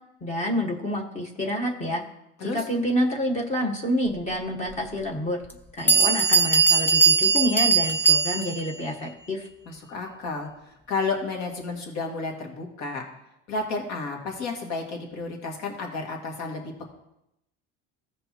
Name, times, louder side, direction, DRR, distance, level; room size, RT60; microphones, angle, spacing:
voice 1, 0.2-2.0 2.4-5.4 5.8-9.4, equal, 25° left, 0 dB, 1.2 m, -28 dB
Bell, 4.7-4.8 5.5-5.6 5.9-8.7, right 5 dB, 5° left, 0.6 m, -20 dB
voice 2, 9.7-13.0 13.5-16.9, left 4 dB, 60° left, 1 dB, 2.1 m, -32 dB
15.5 x 5.3 x 3.0 m, 0.83 s
cardioid pair, 150°, 31 cm